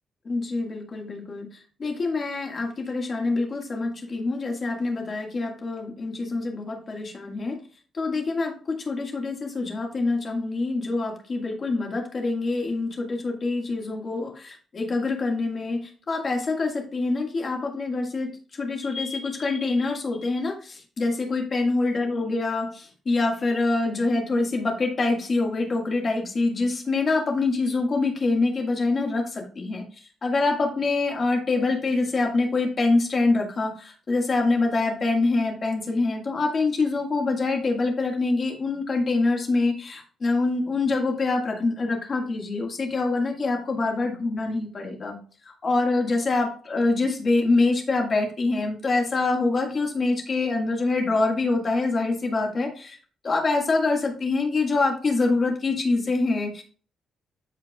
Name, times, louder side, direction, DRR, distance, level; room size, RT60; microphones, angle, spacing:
voice 1, 0.3-1.5 1.8-7.6 7.9-29.8 30.2-45.2 45.5-53.0 53.2-56.6, left 3 dB, 30° left, 1 dB, 1.8 m, -25 dB
13.5 x 4.6 x 2.4 m, 0.41 s
cardioid pair, 170°, 0 cm